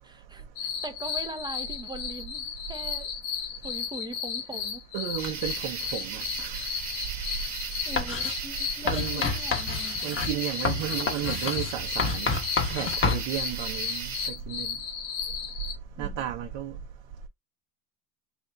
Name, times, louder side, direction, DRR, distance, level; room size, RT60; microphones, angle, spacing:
voice 1, 0.0-3.1 3.6-4.8 7.9-10.0 16.0-16.3, right 2 dB, 10° right, 0.7 m, -41 dB
sound 1, 0.6-15.7, left 7 dB, 90° left, 1.4 m, -34 dB
voice 2, 4.9-6.6 8.8-9.2 10.0-12.4 12.7-14.1 14.5-14.7 16.0-16.7, right 11 dB, 65° right, 0.9 m, -33 dB
sound 2, 5.2-14.3, right 5 dB, 35° right, 1.3 m, -37 dB
Writing, 8.0-8.3 8.9-13.3, left 5 dB, 25° left, 0.9 m, -29 dB
3.5 x 2.6 x 3.8 m
cardioid pair, 105°, 49 cm